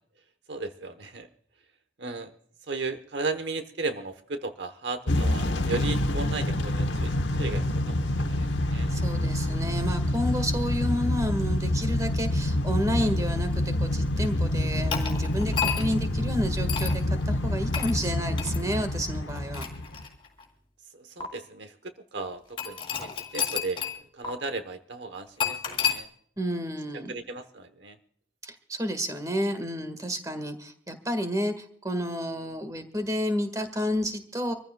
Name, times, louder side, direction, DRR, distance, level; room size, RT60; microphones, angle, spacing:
voice 1, 0.5-1.3 2.0-2.3 2.7-8.9 13.0-13.1 21.0-21.7 22.1-23.9 24.2-26.1 27.1-28.0, right 3 dB, 70° right, 10 dB, 1.0 m, -35 dB
Motor vehicle (road) / Engine starting / Accelerating revving vroom, 5.1-20.0, left 1 dB, 85° left, 1.1 m, -27 dB
voice 2, 8.9-19.7 26.4-27.1 28.4-34.5, equal, 20° right, 9 dB, 1.6 m, -30 dB
sound 1, 14.9-16.0 16.7-17.0 17.7-18.0 18.4-18.6 19.3-20.4 21.2-21.3 22.6-24.0 24.2-24.3 25.4-26.0, left 7 dB, 30° left, 3.4 m, -30 dB
26.0 x 14.5 x 2.3 m, 0.62 s
head